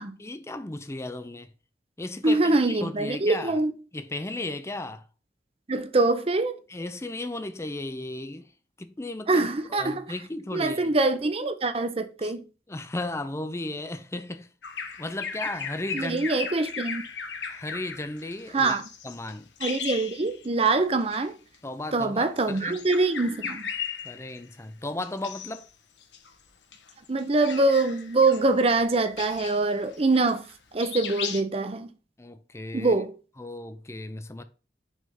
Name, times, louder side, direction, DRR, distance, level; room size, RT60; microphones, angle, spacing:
voice 1, 0.2-1.5 2.0-3.6 3.9-5.1 6.7-8.5 8.8-10.9 12.2-12.3 12.7-14.5 15.0-16.3 17.5-18.8 19.0-19.5 21.6-22.9 24.0-25.7 32.2-32.9 33.4-34.4, left 2 dB, 15° left, 0.6 m, -35 dB
voice 2, 2.2-3.7 5.7-6.6 9.3-10.0 10.5-12.4 15.9-17.0 18.5-18.8 19.6-21.3 21.9-23.7 27.1-30.5 30.7-31.9 32.7-33.1, right 3 dB, 30° right, 0.7 m, -24 dB
Bird vocalization bird call bird song, 14.6-20.7 21.0-21.2 22.3-24.5 25.0-25.7 26.0-30.5 30.8-31.4, left 6 dB, 75° left, 1.0 m, -37 dB
6.3 x 3.5 x 5.4 m
head